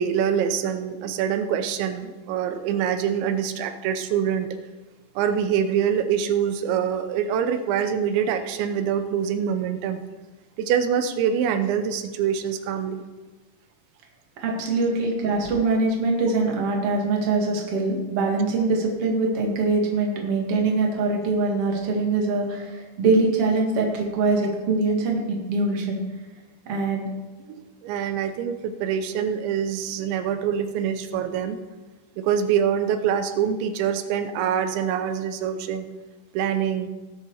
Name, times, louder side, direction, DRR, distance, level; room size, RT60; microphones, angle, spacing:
voice 1, 0.0-4.5 5.2-10.0 10.6-13.0 27.6-31.6 32.2-35.9 36.3-36.9, right 8 dB, 90° right, 8 dB, 3.1 m, -25 dB
voice 2, 14.4-26.0 26.7-27.1, right 3 dB, 40° right, 0 dB, 2.4 m, -23 dB
19.5 x 6.9 x 4.8 m, 1.3 s
omnidirectional pair, 5.1 m